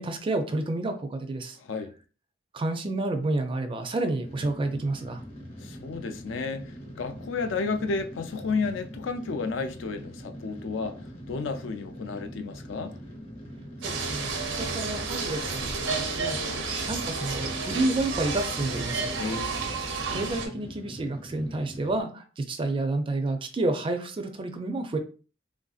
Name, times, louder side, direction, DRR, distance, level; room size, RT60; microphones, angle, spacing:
voice 1, 0.0-1.6 2.5-5.2 13.8-19.2 20.1-25.0, right 2 dB, 30° right, 0.4 m, -30 dB
voice 2, 1.6-1.9 5.6-11.0 11.3-12.9 19.2-19.6, left 4 dB, 80° left, 0.4 m, -32 dB
sound 1, 4.2-22.0, equal, 35° left, 0.9 m, -43 dB
sound 2, 13.8-20.5, right 4 dB, 85° right, 0.7 m, -31 dB
3.2 x 2.6 x 2.3 m
head